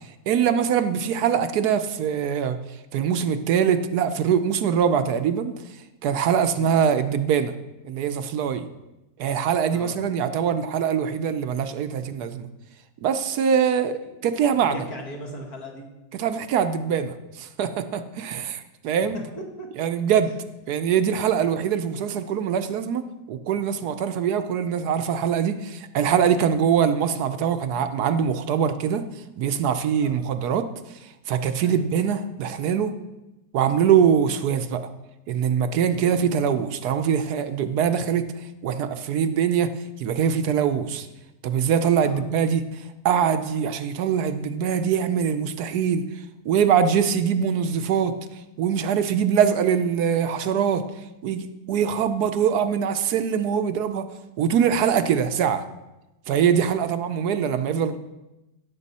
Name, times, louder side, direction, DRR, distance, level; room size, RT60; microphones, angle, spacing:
voice 1, 0.3-2.6 2.9-5.6 6.0-7.5 7.8-8.7 9.2-12.5 13.0-14.9 16.2-19.2 19.8-20.3 20.7-29.0 29.4-30.7 31.3-32.9 33.5-34.9 35.3-39.7 40.0-41.1 41.4-46.0 46.4-48.1 48.6-50.8 51.2-54.0 54.4-55.6 56.3-58.0, right 8 dB, 75° right, 10 dB, 1.2 m, -23 dB
voice 2, 14.7-15.9 19.4-19.7 30.0-30.2 31.6-31.8 35.9-36.1 42.0-42.2, equal, 65° left, 1 dB, 2.4 m, -38 dB
16.0 x 7.2 x 4.2 m, 0.98 s
omnidirectional pair, 1.8 m